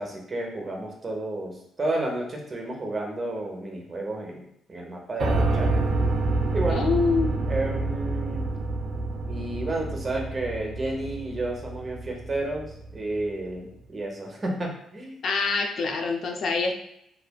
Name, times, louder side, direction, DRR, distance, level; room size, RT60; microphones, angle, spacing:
voice 1, 0.0-5.7 6.5-6.9 7.5-8.5 9.3-15.2, right 2 dB, 30° right, 0 dB, 0.8 m, -31 dB
Piano, 5.2-13.2, right 2 dB, 60° right, 0.4 m, -28 dB
voice 2, 6.7-7.5 15.2-16.8, left 4 dB, 60° left, 3 dB, 0.4 m, -25 dB
3.1 x 2.7 x 2.2 m, 0.76 s
cardioid pair, 90°, 0 cm